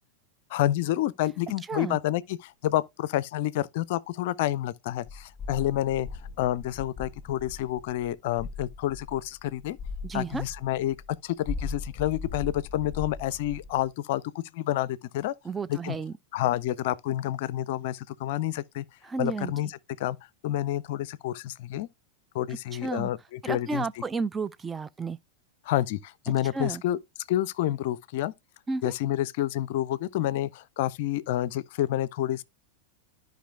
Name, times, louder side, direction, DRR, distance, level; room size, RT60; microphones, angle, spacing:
voice 1, 0.5-6.1 6.4-9.8 10.1-11.0 11.2-15.4 15.7-16.0 16.3-18.8 19.2-19.7 20.0-20.2 20.4-21.9 22.3-24.0 25.7-27.0 27.3-28.3 28.8-32.4, left 13 dB, 50° left, 0.4 m, -29 dB
sound 1, 5.1-11.2 11.4-13.9, left 4 dB, 20° left, 1.3 m, -39 dB
voice 2, 10.0-10.4 15.4-16.1 19.0-19.5 22.8-23.1 23.4-25.2 26.5-26.8 28.7-28.9, right 4 dB, 15° right, 0.4 m, -32 dB
13.0 x 5.1 x 2.3 m
figure-of-eight pair, 90°, 0 cm